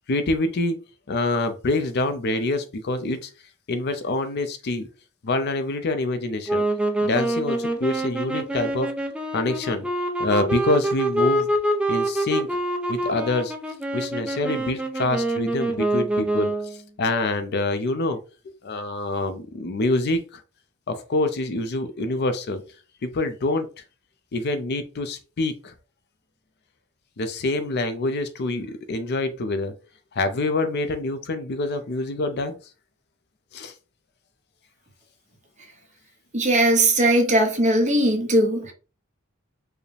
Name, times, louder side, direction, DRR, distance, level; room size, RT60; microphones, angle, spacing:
voice 1, 0.1-0.8 1.1-3.3 3.7-4.9 5.2-6.6 7.0-8.9 9.3-9.9 10.2-11.5 11.9-12.5 12.9-13.5 13.9-16.5 17.0-18.2 18.6-20.4 20.9-22.6 23.0-23.7 24.3-25.7 27.2-29.7 30.1-32.6 33.5-33.7, left 2 dB, 50° left, 0.5 m, -26 dB
sound 1, 6.5-16.8, right 1 dB, 5° right, 0.5 m, -26 dB
voice 2, 36.3-38.7, right 1 dB, 35° right, 0.9 m, -19 dB
4.7 x 2.1 x 3.2 m
head